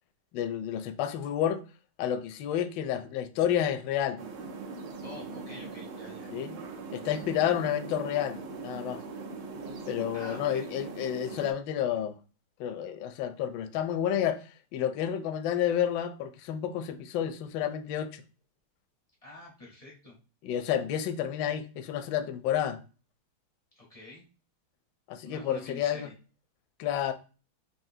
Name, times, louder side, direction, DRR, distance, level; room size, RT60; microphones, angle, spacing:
voice 1, 0.3-1.6 2.0-4.2 6.3-6.6 6.9-9.0 9.9-12.2 12.6-18.2 20.4-22.8 25.1-26.1 26.8-27.1, left 10 dB, 75° left, 1.1 m, -30 dB
sound 1, 4.2-11.5, right 4 dB, 75° right, 1.6 m, -41 dB
voice 2, 5.0-6.3 10.1-10.7 19.2-20.2 23.8-24.2 25.2-26.1, left 2 dB, 60° left, 0.3 m, -47 dB
4.9 x 2.6 x 2.6 m
omnidirectional pair, 2.4 m